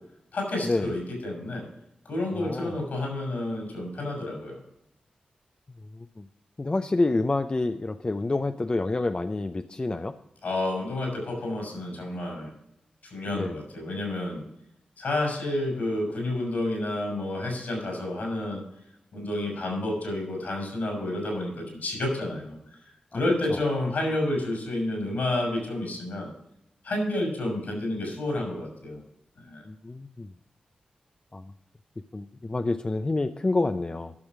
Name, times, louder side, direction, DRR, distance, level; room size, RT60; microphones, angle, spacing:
voice 1, 0.3-1.7 2.1-4.6 10.4-12.5 13.0-14.4 15.0-18.6 19.1-22.6 23.1-26.3 26.8-29.0 29.4-29.6, left 1 dB, 75° left, 1 dB, 5.4 m, -30 dB
voice 2, 2.3-2.8 5.9-6.2 6.6-10.1 13.3-13.6 23.1-23.6 29.7-30.3 31.3-31.5 32.1-34.1, left 2 dB, 30° left, 8 dB, 0.6 m, -28 dB
12.5 x 6.3 x 6.0 m, 0.82 s
cardioid pair, 45°, 3 cm